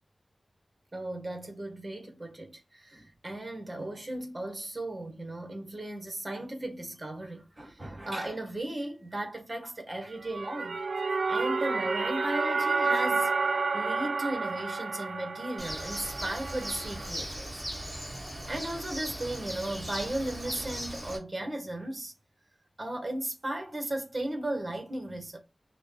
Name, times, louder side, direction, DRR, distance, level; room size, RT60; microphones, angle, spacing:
voice 1, 0.9-10.8 11.3-13.3 13.7-17.6 18.5-22.1 22.8-25.4, right 1 dB, 30° right, 1.4 m, -36 dB
sound 1, 10.1-17.1, right 4 dB, 75° right, 0.5 m, -30 dB
Bird, 15.6-21.2, equal, 10° right, 2.2 m, -38 dB
6.1 x 2.3 x 3.3 m
wide cardioid pair, 90°, 0 cm